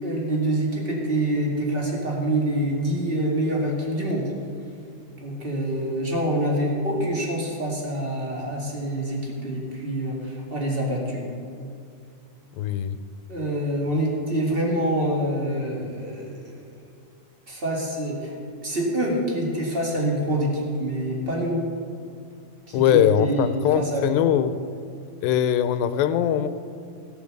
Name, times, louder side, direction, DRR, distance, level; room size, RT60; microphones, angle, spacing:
voice 1, 0.0-4.3 5.2-11.2 13.3-16.6 17.5-18.3 18.6-21.6 22.7-24.1, right 1 dB, 25° right, -2 dB, 1.3 m, -26 dB
voice 2, 12.6-13.0 22.7-24.5 25.2-26.5, left 9 dB, 90° left, 12 dB, 2.4 m, -21 dB
15.5 x 7.1 x 6.6 m, 2.3 s
omnidirectional pair, 4.1 m